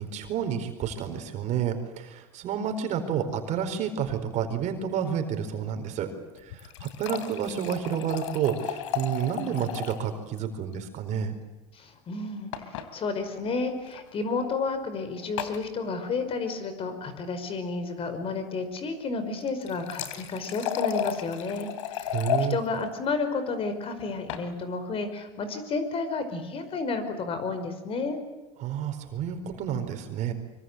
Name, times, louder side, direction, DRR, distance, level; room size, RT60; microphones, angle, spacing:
voice 1, 0.0-6.1 6.4-11.3 22.1-22.6 28.6-30.3, right 8 dB, 50° right, 7 dB, 4.5 m, -30 dB
sound 1, 6.4-10.1 10.4-10.5 10.7-10.8 12.5-12.9 13.8-14.0 15.4-15.6 19.4-22.5 24.0-24.5, left 9 dB, 85° left, 2.9 m, -33 dB
voice 2, 11.7-22.2 22.5-28.2, left 4 dB, 40° left, 9 dB, 5.1 m, -31 dB
25.0 x 24.5 x 8.1 m, 1.1 s
supercardioid pair, 110°, 16 cm